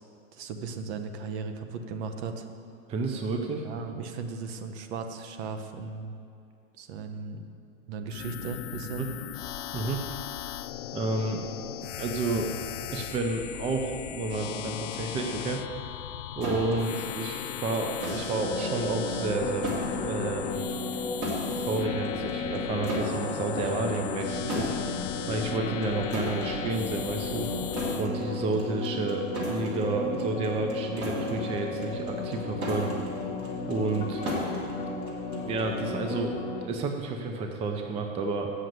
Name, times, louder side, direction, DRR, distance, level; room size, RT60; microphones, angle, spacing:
voice 1, 0.3-2.5 3.6-6.1 6.8-7.4 7.9-9.1, right 4 dB, 55° right, 7 dB, 1.0 m, -36 dB
voice 2, 2.9-3.6 9.0-9.1 9.7-10.0 10.9-11.4 12.0-12.6 12.9-15.9 16.3-19.7 20.0-20.7 21.6-24.7 25.3-27.5 28.0-32.9 33.7-34.2 35.4-38.5, right 3 dB, 15° right, 3 dB, 0.5 m, -30 dB
sound 1, 8.1-28.1, left 13 dB, 65° left, 0.5 m, -38 dB
sound 2, 16.4-35.8, equal, 40° right, 2.8 m, -37 dB
sound 3, 18.3-36.7, left 3 dB, 20° left, 0.8 m, -34 dB
7.7 x 6.4 x 7.8 m, 2.5 s
supercardioid pair, 135°, 40 cm